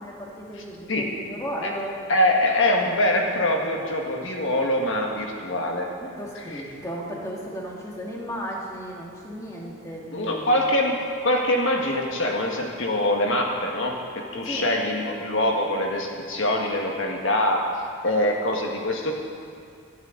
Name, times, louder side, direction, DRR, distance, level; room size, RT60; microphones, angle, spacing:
voice 1, 0.0-2.0 6.0-10.6 14.4-14.7, equal, 15° left, -3 dB, 2.1 m, -35 dB
voice 2, 2.1-5.9 6.5-6.6 10.1-11.0 11.2-17.6 18.0-19.1, left 1 dB, 60° left, 0 dB, 1.7 m, -24 dB
18.5 x 12.5 x 4.0 m, 2.3 s
head